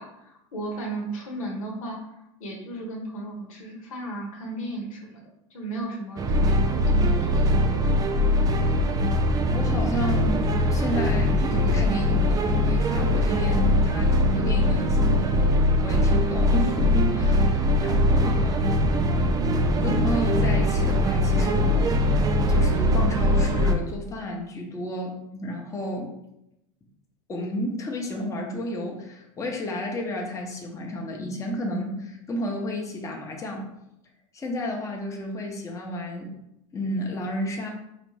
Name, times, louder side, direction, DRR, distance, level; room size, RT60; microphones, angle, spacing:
voice 1, 0.0-5.2 5.5-8.0 18.0-18.6, right 2 dB, 90° left, 0 dB, 1.1 m, -35 dB
sound 1, 6.2-23.7, left 1 dB, 20° right, 0.4 m, -22 dB
voice 2, 9.5-15.4 15.8-18.8 19.7-22.2 22.5-26.1 27.3-33.7 34.3-36.3 36.7-37.7, left 1 dB, 20° left, 0 dB, 0.8 m, -31 dB
4.9 x 2.5 x 3.2 m, 0.83 s
supercardioid pair, 115°, 17 cm